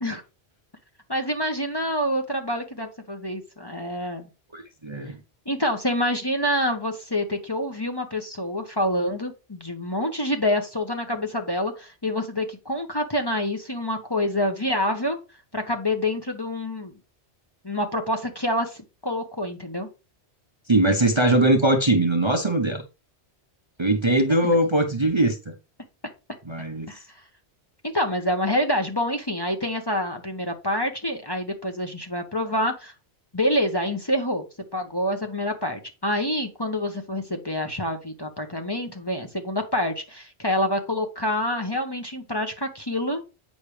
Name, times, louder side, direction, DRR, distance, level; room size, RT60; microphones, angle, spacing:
voice 1, 1.1-4.3 5.5-15.2 15.5-16.9 17.6-19.9 24.4-24.5 26.9-27.0 27.8-32.9 33.3-34.4 34.7-43.2, left 1 dB, 25° left, 1.0 m, -27 dB
voice 2, 4.5-5.2 20.7-22.8 23.8-25.5 26.5-26.9, right 1 dB, 25° right, 0.9 m, -21 dB
8.5 x 6.0 x 3.3 m
omnidirectional pair, 1.2 m